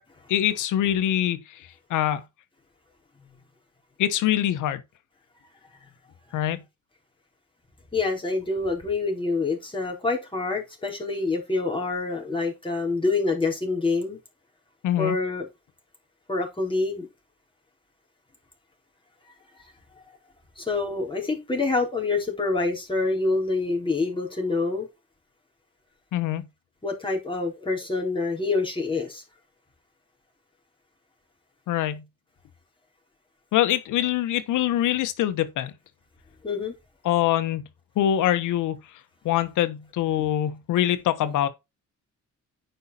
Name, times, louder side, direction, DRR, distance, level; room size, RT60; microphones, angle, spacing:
voice 1, 0.3-1.6 1.9-2.2 4.0-4.8 6.3-6.6 14.8-15.2 26.1-26.4 31.7-32.0 33.5-35.7 37.0-37.6 37.9-38.8 39.2-41.5, left 12 dB, 85° left, 1.4 m, -24 dB
voice 2, 7.9-14.2 15.0-15.5 16.3-17.1 20.0-20.2 20.6-24.9 26.8-29.2 36.4-36.7, left 3 dB, 15° left, 4.4 m, -26 dB
9.2 x 5.7 x 4.3 m
cardioid pair, 90°, 30 cm